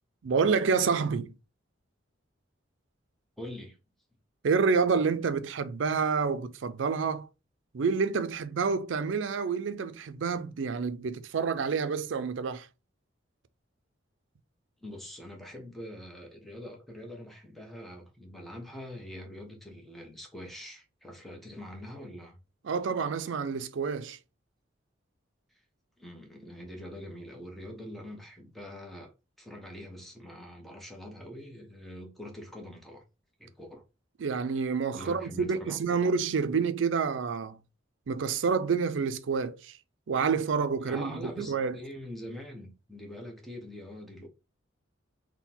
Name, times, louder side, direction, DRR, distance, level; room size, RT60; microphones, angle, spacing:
voice 1, 0.2-1.3 4.4-7.3 7.7-12.7 22.6-24.2 34.2-37.6 38.1-39.8 40.1-41.8, right 5 dB, 65° right, 0.4 m, -28 dB
voice 2, 3.4-3.8 14.8-22.4 26.0-29.1 29.4-33.0 33.4-33.8 34.9-36.0 40.8-44.3, left 1 dB, ahead, 0.8 m, -44 dB
3.7 x 2.2 x 4.2 m
head